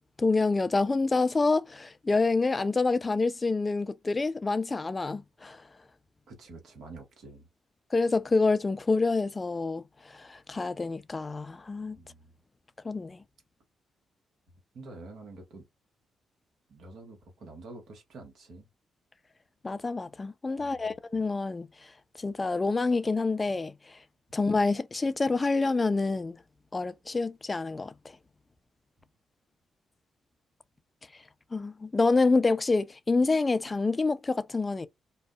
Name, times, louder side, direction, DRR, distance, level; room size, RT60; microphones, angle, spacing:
voice 1, 0.2-5.6 7.9-9.8 10.2-12.0 12.8-13.2 19.6-21.7 22.2-23.7 24.3-26.4 26.7-27.9 31.5-34.9, left 3 dB, 30° left, 0.3 m, -27 dB
voice 2, 6.3-7.5 11.9-12.3 14.7-15.6 16.7-18.7 20.6-20.9, right 3 dB, 75° right, 1.1 m, -47 dB
2.5 x 2.2 x 2.2 m
supercardioid pair, 60°, 0 cm